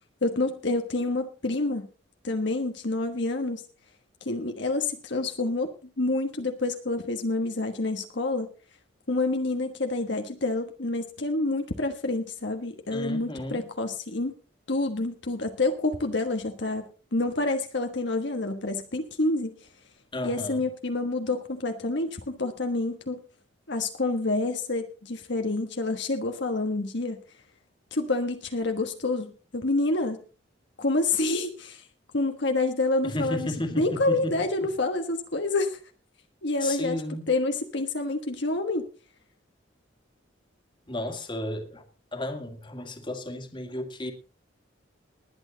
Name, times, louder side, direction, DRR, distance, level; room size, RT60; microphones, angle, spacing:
voice 1, 0.2-1.9 2.2-3.6 4.2-5.7 6.0-8.5 9.1-14.3 14.7-19.7 20.2-23.2 23.7-27.2 27.9-30.2 30.8-31.9 32.1-33.5 33.8-35.8 36.4-37.0 37.3-38.9, left 2 dB, 60° left, 1.4 m, -28 dB
voice 2, 12.9-13.6 20.1-20.6 33.0-34.5 36.6-37.3 40.9-41.8 42.1-44.1, left 1 dB, 25° left, 2.1 m, -33 dB
20.0 x 9.0 x 4.0 m
head